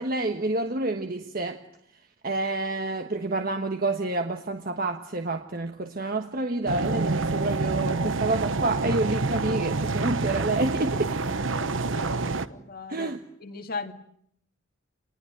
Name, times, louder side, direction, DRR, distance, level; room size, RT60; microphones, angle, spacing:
voice 1, 0.0-1.6 2.2-11.2 12.9-13.2, right 2 dB, 45° right, 1.4 m, -28 dB
sound 1, 6.7-12.5, right 3 dB, 75° right, 1.1 m, -27 dB
voice 2, 11.6-12.1 12.5-13.1 13.4-13.9, left 4 dB, 50° left, 2.1 m, -37 dB
28.5 x 20.5 x 9.2 m
head